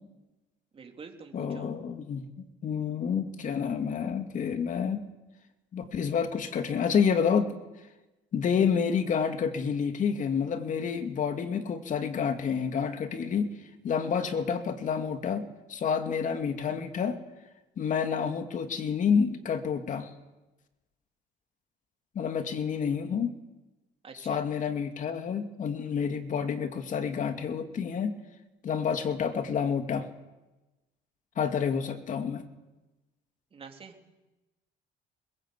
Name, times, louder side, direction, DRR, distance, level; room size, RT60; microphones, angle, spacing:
voice 1, 0.7-1.7 24.0-24.4 33.5-34.0, right 5 dB, 35° right, 3 dB, 3.8 m, -46 dB
voice 2, 1.3-2.3 2.6-5.0 5.7-7.5 8.3-13.5 13.8-17.2 17.8-20.1 22.1-23.3 24.1-28.2 28.6-30.1 31.4-32.4, left 6 dB, 50° left, 7 dB, 2.6 m, -29 dB
24.5 x 21.5 x 8.5 m, 1.1 s
cardioid pair, 110°, 17 cm